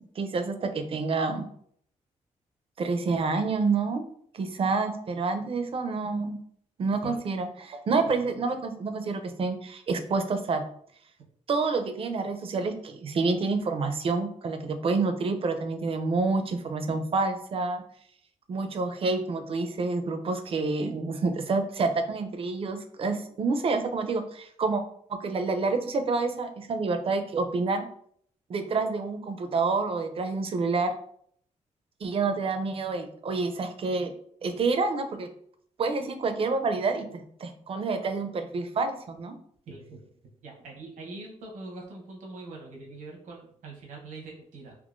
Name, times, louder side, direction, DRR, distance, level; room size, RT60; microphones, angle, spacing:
voice 1, 0.2-1.5 2.8-4.1 4.3-6.4 6.8-10.6 11.5-17.8 18.5-24.8 25.1-27.8 28.5-30.9 32.0-34.1 34.4-35.3 35.8-39.3, right 4 dB, 50° right, 8 dB, 0.5 m, -28 dB
voice 2, 7.9-8.4 39.7-40.1 40.4-44.7, right 3 dB, 85° right, -1 dB, 0.9 m, -43 dB
3.6 x 2.9 x 2.5 m, 0.64 s
cardioid pair, 110°, 13 cm